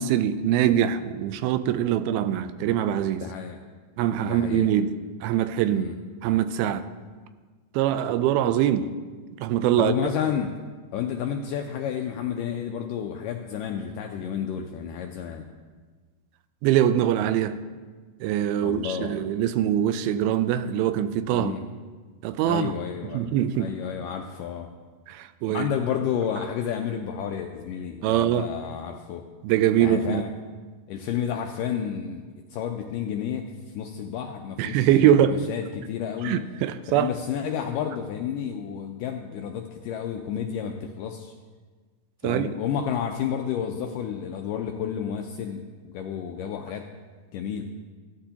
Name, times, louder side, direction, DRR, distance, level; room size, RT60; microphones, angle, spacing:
voice 1, 0.0-3.3 4.0-4.9 5.2-5.9 6.2-6.8 7.7-8.9 9.4-9.9 16.6-17.6 18.2-21.5 22.2-22.7 23.1-23.7 25.1-25.7 28.0-28.5 29.4-30.2 34.6-35.5 36.2-37.1 42.2-42.5, right 10 dB, 85° right, 2.4 m, -23 dB
voice 2, 3.2-3.6 4.2-4.7 5.7-6.0 9.8-10.5 10.9-15.5 18.6-19.2 21.3-21.6 22.5-23.3 23.5-24.7 25.5-29.2 29.8-30.3 30.9-32.2 32.5-36.4 36.9-41.3 42.2-46.9 47.3-47.6, left 8 dB, 85° left, 1.9 m, -31 dB
15.0 x 12.5 x 2.9 m
omnidirectional pair, 4.4 m